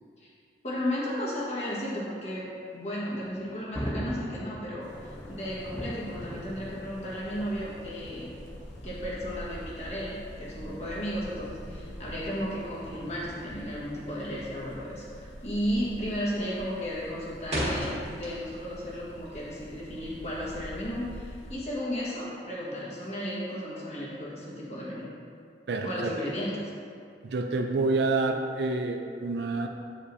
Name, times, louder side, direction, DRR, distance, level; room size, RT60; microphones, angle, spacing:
voice 1, 0.6-8.3 8.8-25.1 25.8-26.7, equal, 40° left, -6 dB, 1.4 m, -34 dB
Thunder, 3.1-13.9, equal, 5° left, 0.5 m, -42 dB
sound 1, 4.8-21.5, equal, 85° left, 0.7 m, -46 dB
sound 2, 17.5-18.8 19.1-20.5, equal, 35° right, 1.5 m, -34 dB
voice 2, 25.7-26.1 27.2-29.7, right 3 dB, 75° right, 4 dB, 0.4 m, -28 dB
8.3 x 5.0 x 2.7 m, 2.4 s
head